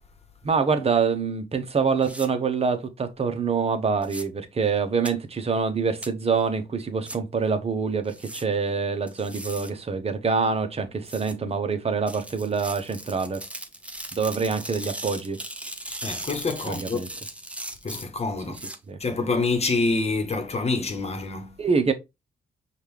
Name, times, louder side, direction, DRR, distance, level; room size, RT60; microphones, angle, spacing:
voice 1, 0.4-13.4 14.1-15.4 16.7-17.1 18.5-19.0 21.6-21.9, right 5 dB, 35° right, 0.9 m, -25 dB
sound 1, 2.0-2.3 4.0-4.2 5.1-5.2 6.0-6.1 7.1-7.2 8.1-8.4 9.1-9.7 11.1-11.3 12.1-18.8, right 1 dB, 5° right, 0.7 m, -38 dB
voice 2, 16.0-17.0 17.8-18.6 19.0-21.5, left 3 dB, 40° left, 1.1 m, -26 dB
5.2 x 2.5 x 3.2 m
cardioid pair, 75°, 17 cm